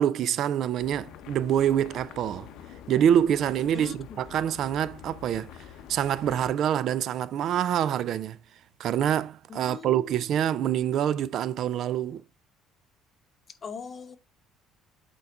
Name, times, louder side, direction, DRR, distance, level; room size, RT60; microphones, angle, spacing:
voice 1, 0.0-2.5 2.9-5.5 5.9-8.4 8.8-12.2, right 10 dB, 60° right, 0.4 m, -26 dB
sound 1, 0.8-6.5, left 10 dB, 70° left, 0.7 m, -46 dB
voice 2, 9.5-10.6 13.6-14.2, left 5 dB, 35° left, 0.8 m, -41 dB
8.2 x 3.8 x 3.5 m
cardioid pair, 115°, 0 cm